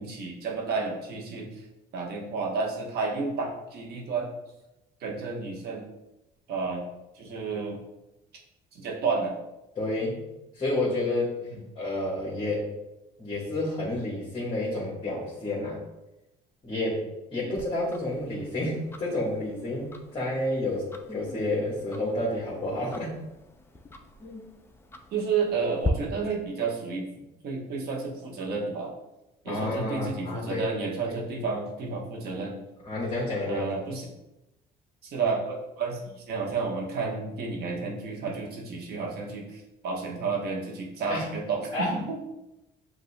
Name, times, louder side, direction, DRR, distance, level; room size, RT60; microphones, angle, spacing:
voice 1, 0.0-1.6 1.9-4.3 5.0-5.8 6.5-6.8 7.1-7.8 8.7-9.3 11.5-11.6 17.4-17.5 25.1-27.1 27.4-28.9 29.4-32.6 33.5-34.1 35.0-42.2, right 4 dB, 70° right, -1 dB, 1.1 m, -31 dB
voice 2, 9.8-10.2 10.5-11.3 11.7-12.7 13.2-15.8 16.6-17.1 17.3-23.2 24.2-24.4 29.4-30.6 31.0-31.2 32.9-33.9 41.1-41.3 41.7-42.0, left 1 dB, 30° left, -6 dB, 1.4 m, -30 dB
Tick-tock, 17.6-25.9, left 3 dB, 15° left, 0.4 m, -42 dB
7.9 x 2.7 x 2.2 m, 0.95 s
cardioid pair, 110°, 17 cm